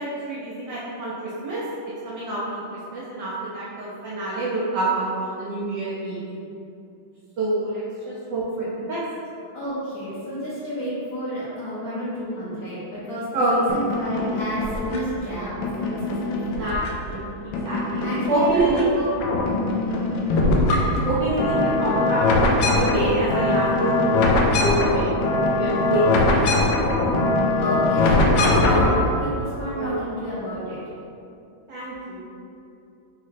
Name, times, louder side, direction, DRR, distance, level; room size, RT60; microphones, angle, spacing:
voice 1, 0.0-1.7 2.0-6.2 7.4-9.0 13.3-13.5 16.6-18.8 21.0-24.2 24.6-25.2 25.5-26.5 29.7-29.9 31.7-32.3, right 2 dB, 65° right, -8 dB, 1.2 m, -26 dB
voice 2, 9.5-16.7 18.0-19.2 19.8-20.1 27.6-30.8, equal, 50° left, -13 dB, 1.3 m, -30 dB
sound 1, 13.7-15.2 15.6-17.2 17.5-18.8 19.1-29.1, left 2 dB, 75° left, 1.3 m, -22 dB
4.2 x 3.1 x 4.0 m, 2.7 s
omnidirectional pair, 2.3 m